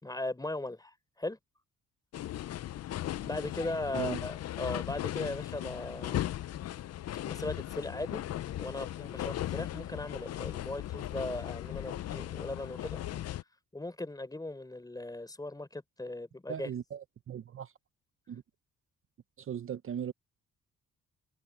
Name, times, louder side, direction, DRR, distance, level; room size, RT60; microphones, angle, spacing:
voice 1, 0.0-1.4 3.2-6.3 7.3-8.2 8.6-13.0 13.7-16.7, left 2 dB, 10° left, 3.8 m, -38 dB
sound 1, 2.1-13.4, left 13 dB, 55° left, 0.6 m, -37 dB
voice 2, 3.9-4.3 16.5-17.7 18.3-18.4 19.4-20.1, right 9 dB, 45° right, 0.8 m, -38 dB
cardioid pair, 90°, 30 cm